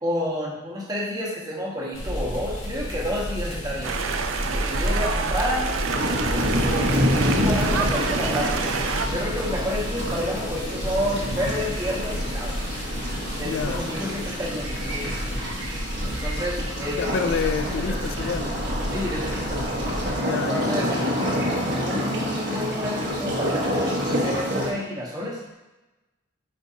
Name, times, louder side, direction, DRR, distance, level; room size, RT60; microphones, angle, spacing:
voice 1, 0.0-3.9 4.5-5.9 6.2-8.8 9.1-12.6 13.3-15.4 16.0-18.0 18.9-19.7 20.3-20.9 21.8-25.4, equal, 20° right, 1.2 m, -30 dB
sound 1, 1.9-20.1, equal, 85° left, 1.7 m, -31 dB
sound 2, 3.8-9.1, right 5 dB, 75° right, 0.5 m, -28 dB
sound 3, 5.8-24.7, equal, 60° right, 1.3 m, -28 dB
voice 2, 13.4-13.9 16.9-18.6 20.2-21.4, left 5 dB, 65° left, 0.4 m, -29 dB
8.3 x 4.4 x 2.8 m
head